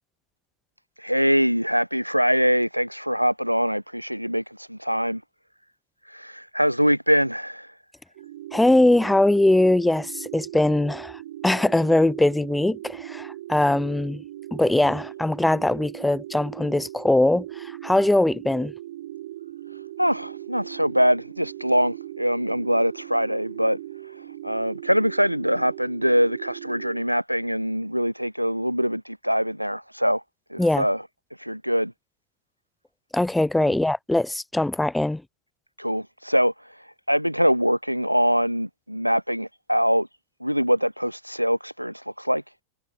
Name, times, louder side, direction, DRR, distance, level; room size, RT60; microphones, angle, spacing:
voice 1, 1.0-5.2 6.1-7.7 20.0-23.8 24.4-30.2 30.5-31.0 31.4-31.9 35.8-36.5 37.1-40.1 40.4-42.4, equal, 90° right, 0.7 m, -23 dB
sound 1, 8.1-27.0, right 14 dB, 55° right, 0.9 m, -39 dB
voice 2, 8.5-14.2 14.5-18.7 30.6-30.9 33.1-35.2, left 1 dB, 5° left, 0.5 m, -21 dB
figure-of-eight pair, 90°, 0 cm